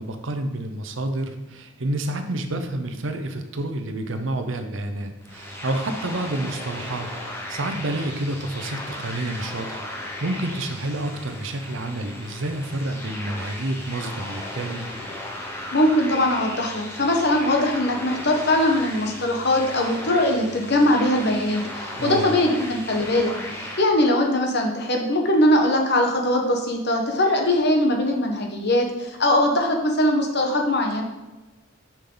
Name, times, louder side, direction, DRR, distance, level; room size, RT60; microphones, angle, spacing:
voice 1, 0.0-9.9 10.2-14.9 22.0-22.3, right 1 dB, 70° right, 7 dB, 0.8 m, -29 dB
sound 1, 5.2-23.8, left 1 dB, 10° left, 1.0 m, -36 dB
voice 2, 15.7-31.0, left 1 dB, 55° left, 2 dB, 1.2 m, -21 dB
7.3 x 5.5 x 3.9 m, 1.1 s
head